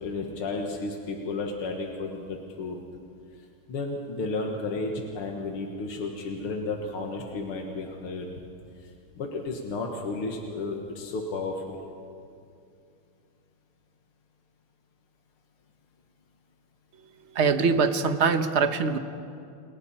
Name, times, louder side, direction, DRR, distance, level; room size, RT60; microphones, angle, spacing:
voice 1, 0.0-2.8 3.7-8.3 9.1-11.8, left 3 dB, 80° left, 1 dB, 2.5 m, -33 dB
voice 2, 17.3-19.0, right 5 dB, 45° right, 8 dB, 1.0 m, -23 dB
30.0 x 30.0 x 4.4 m, 2.5 s
omnidirectional pair, 2.4 m